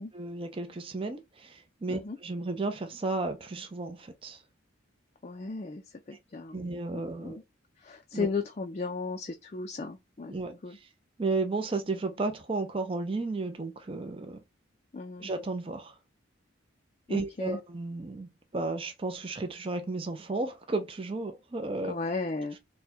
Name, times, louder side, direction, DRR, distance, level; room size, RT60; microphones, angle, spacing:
voice 1, 0.0-4.4 6.5-7.4 8.1-8.3 10.2-10.9 11.2-14.4 15.2-16.0 17.1-21.9, right 3 dB, 25° right, 0.4 m, -33 dB
voice 2, 5.2-5.8 6.1-6.6 7.2-7.4 7.8-10.3 10.6-10.8 14.9-15.3 17.1-17.6 21.8-22.6, left 4 dB, 35° left, 0.4 m, -35 dB
3.5 x 2.2 x 4.3 m
head